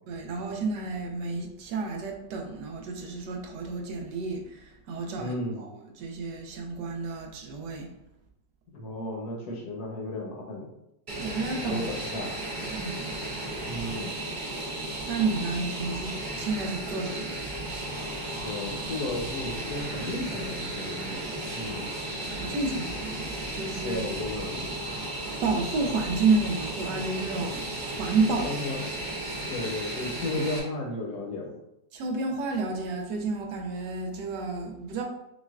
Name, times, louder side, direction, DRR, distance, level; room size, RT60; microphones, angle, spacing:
voice 1, 0.1-5.7 6.0-7.9 11.2-11.8 12.7-13.4 15.1-17.4 22.2-24.0 25.4-28.5 31.9-35.0, right 3 dB, 75° right, 2 dB, 1.2 m, -30 dB
voice 2, 5.2-5.7 8.7-10.7 11.7-12.4 13.6-14.1 18.4-21.2 21.5-21.9 23.8-24.8 28.4-28.9 29.4-31.6, left 2 dB, 65° left, -1 dB, 1.3 m, -34 dB
Fixed-wing aircraft airplane, 11.1-30.6, right 1 dB, 55° right, 0.5 m, -34 dB
6.1 x 2.2 x 2.3 m, 0.85 s
omnidirectional pair, 1.9 m